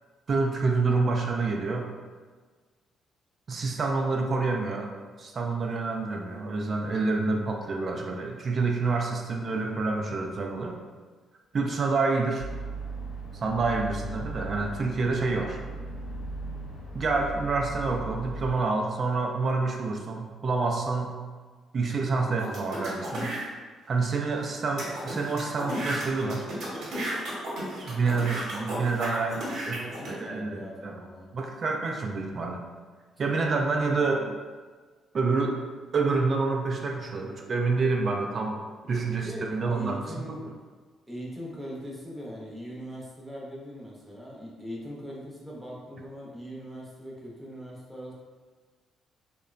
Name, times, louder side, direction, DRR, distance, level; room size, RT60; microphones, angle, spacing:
voice 1, 0.3-1.9 3.5-4.9 5.2-10.8 11.5-12.5 13.4-15.6 16.9-21.1 21.7-23.3 23.9-26.5 27.8-29.8 30.1-31.0 31.3-32.6 33.2-34.4 35.1-35.6 35.9-38.6 38.9-40.2, right 3 dB, 45° right, 1 dB, 0.3 m, -28 dB
sound 1, 12.4-18.5, right 2 dB, 70° left, 0.6 m, -37 dB
sound 2, 22.4-23.4 24.0-24.1 24.3-24.4 24.8-30.1, right 1 dB, 70° right, 0.9 m, -34 dB
voice 2, 29.7-31.3 38.9-40.4 41.1-48.1, equal, 5° right, -5 dB, 0.7 m, -40 dB
2.8 x 2.1 x 2.4 m, 1.4 s
cardioid pair, 90°, 0 cm